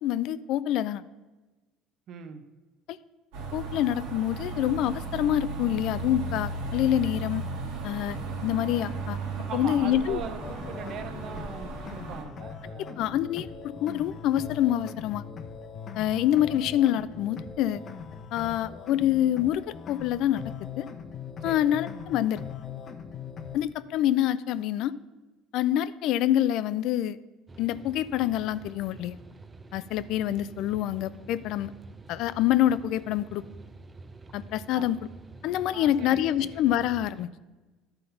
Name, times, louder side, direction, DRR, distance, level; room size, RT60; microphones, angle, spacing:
voice 1, 0.0-1.0 2.9-3.0 3.5-7.4 7.8-9.2 9.5-10.2 13.0-15.2 16.0-17.8 18.3-20.9 21.4-22.4 23.5-24.9 25.5-27.2 27.6-29.2 29.7-31.7 32.1-33.4 34.3-35.1 35.4-37.3, left 12 dB, 65° left, 16 dB, 0.3 m, -26 dB
voice 2, 2.1-2.5 9.5-13.2 21.4-21.7 34.7-35.0 35.7-36.6, right 6 dB, 55° right, 9 dB, 0.8 m, -41 dB
sound 1, 3.3-12.2, right 3 dB, 85° right, 1.6 m, -35 dB
sound 2, 10.4-23.6, left 6 dB, 40° left, 0.7 m, -41 dB
sound 3, 27.5-37.3, right 3 dB, 20° right, 0.5 m, -48 dB
11.5 x 3.9 x 5.6 m, 1.2 s
supercardioid pair, 100°, 0 cm